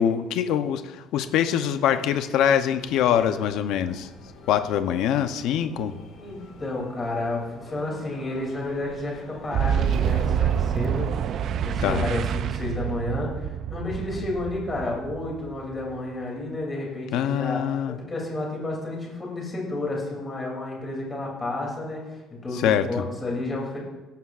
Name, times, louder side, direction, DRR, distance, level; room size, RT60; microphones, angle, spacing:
voice 1, 0.0-4.1 4.5-5.9 11.8-12.1 17.1-18.0 22.5-23.0, left 9 dB, 60° left, 9 dB, 0.7 m, -24 dB
sound 1, 2.8-11.8, left 3 dB, 45° left, 2.5 m, -47 dB
voice 2, 6.2-11.1 11.5-17.6 18.1-23.8, left 2 dB, 15° left, -2 dB, 2.8 m, -31 dB
Boom, 9.5-16.1, right 9 dB, 40° right, 0.3 m, -27 dB
17.5 x 11.5 x 2.5 m, 1.1 s
cardioid pair, 180°, 0 cm